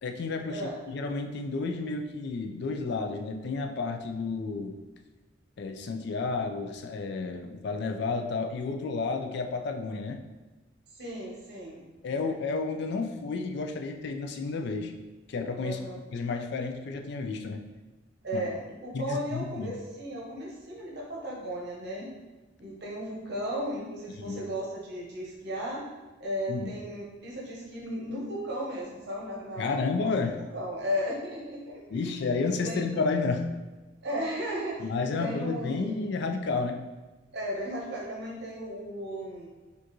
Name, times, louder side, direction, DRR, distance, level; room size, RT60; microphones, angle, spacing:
voice 1, 0.0-0.6 0.9-4.7 5.6-10.2 12.0-14.9 15.3-15.8 16.1-17.6 18.3-18.4 18.9-19.7 24.2-24.4 26.5-26.8 29.6-30.4 31.9-33.5 34.8-36.8, left 4 dB, 60° left, 5 dB, 0.4 m, -31 dB
voice 2, 10.9-12.3 15.6-16.0 18.2-22.1 22.6-25.8 26.2-32.2 32.6-32.8 34.0-35.9 37.3-39.5, equal, 55° right, -3 dB, 0.9 m, -35 dB
4.6 x 2.4 x 3.0 m, 1.2 s
head